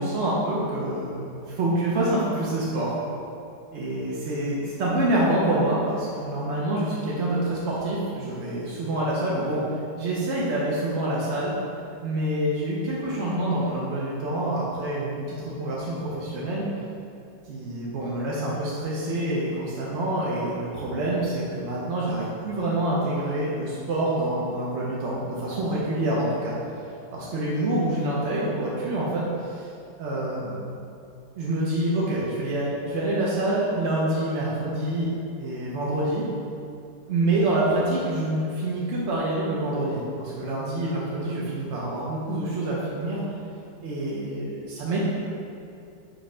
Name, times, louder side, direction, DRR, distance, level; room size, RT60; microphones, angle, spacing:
voice 1, 0.0-2.9 3.7-9.6 10.0-11.5 12.0-16.6 17.5-26.6 27.1-29.7 30.0-30.6 31.4-35.1 35.4-36.2 37.1-43.2 43.8-45.0, right 1 dB, 65° right, -6 dB, 0.7 m, -26 dB
5.0 x 2.1 x 4.8 m, 2.5 s
omnidirectional pair, 1.9 m